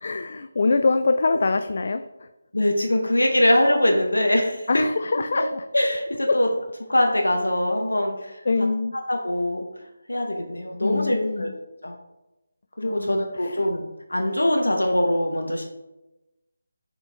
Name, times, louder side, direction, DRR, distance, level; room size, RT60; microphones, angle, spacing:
voice 1, 0.0-2.3 4.7-5.6 6.3-6.4 8.5-9.0 10.8-11.5 12.8-13.6, left 3 dB, 55° left, 8 dB, 0.3 m, -24 dB
voice 2, 2.5-4.8 5.3-5.4 5.7-6.5 6.9-8.4 9.1-9.6 10.1-11.5 11.8-11.9 12.8-13.8 14.1-15.6, left 1 dB, 85° left, 2 dB, 0.9 m, -22 dB
6.8 x 4.4 x 3.4 m, 0.99 s
figure-of-eight pair, 160°, 0 cm